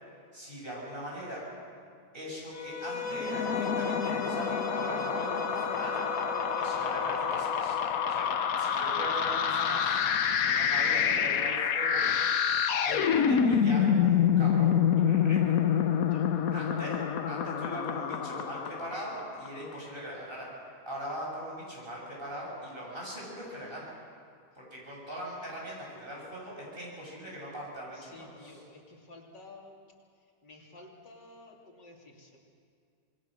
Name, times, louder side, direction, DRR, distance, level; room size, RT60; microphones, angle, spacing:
voice 1, 0.3-1.5 2.1-6.0 6.6-7.8 8.1-8.3 8.6-9.9 10.4-12.0 12.9-15.6 16.5-20.5 20.9-23.9 24.5-28.6, equal, 30° right, -4 dB, 7.4 m, -40 dB
Bowed string instrument, 2.5-7.5, left 2 dB, 35° left, 1.6 m, -37 dB
sound 1, 3.1-19.5, left 8 dB, 60° left, 1.2 m, -27 dB
voice 2, 16.0-16.6 27.9-29.7 30.4-32.4, left 2 dB, 75° left, -1 dB, 3.6 m, -52 dB
26.5 x 21.5 x 6.5 m, 2.3 s
omnidirectional pair, 1.9 m